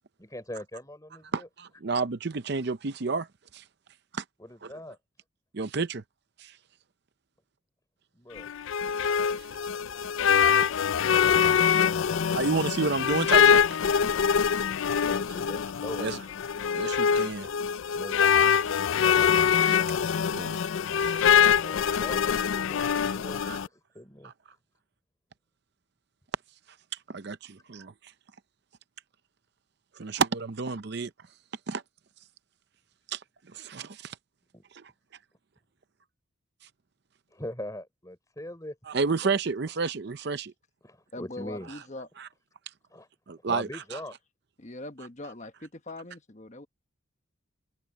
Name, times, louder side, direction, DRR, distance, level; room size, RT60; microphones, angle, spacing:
voice 1, 0.2-1.5 4.4-5.0 8.1-8.5 10.5-10.7 14.8-16.2 17.9-18.2 21.6-24.3 34.5-34.6 37.3-38.8 40.8-41.7 42.9-43.1 43.5-44.2, left 1 dB, 15° left, 4.7 m, -42 dB
voice 2, 1.3-3.3 3.5-3.6 4.1-4.2 4.6-4.7 5.5-6.0 6.4-6.6 9.0-9.1 9.4-9.5 12.3-13.6 16.0-16.2 16.7-17.5 19.3-19.8 20.3-20.6 21.0-21.1 23.1-23.6 24.2-24.3 27.1-28.1 30.0-31.1 31.7-31.8 33.1-33.2 33.5-34.2 34.7-34.9 38.9-40.5 42.2-42.3 43.3-44.0, right 4 dB, 50° right, 0.6 m, -31 dB
sound 1, 8.4-23.7, left 7 dB, 70° left, 0.4 m, -24 dB
voice 3, 41.1-42.1 44.6-46.7, left 2 dB, 35° left, 1.2 m, -41 dB
head